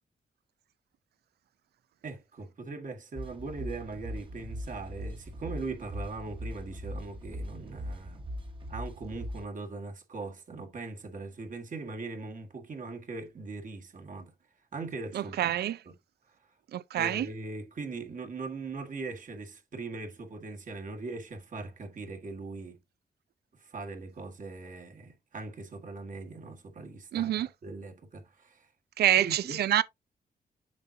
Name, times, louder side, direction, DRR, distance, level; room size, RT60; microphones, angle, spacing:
voice 1, 2.0-8.4 8.7-14.3 14.7-15.5 15.8-15.9 16.9-22.8 23.6-27.3 27.6-28.7 29.2-29.6, right 3 dB, 55° right, 1.7 m, -40 dB
sound 1, 3.2-9.5, equal, 30° right, 1.3 m, -40 dB
voice 2, 15.1-15.8 16.7-17.3 27.1-27.5 29.0-29.8, right 12 dB, 85° right, 0.5 m, -26 dB
7.2 x 5.7 x 2.7 m
cardioid pair, 95°, 16 cm